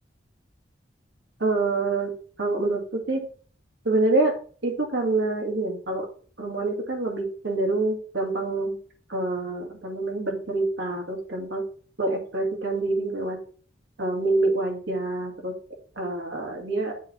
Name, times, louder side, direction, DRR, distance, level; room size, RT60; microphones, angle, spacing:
voice 1, 1.4-2.1 2.4-3.2 3.8-4.3 4.6-6.1 6.4-8.8 9.1-11.6 12.0-13.4 14.0-15.5 16.0-16.9, right 2 dB, 65° right, 1 dB, 2.0 m, -26 dB
7.5 x 3.4 x 5.6 m, 0.43 s
head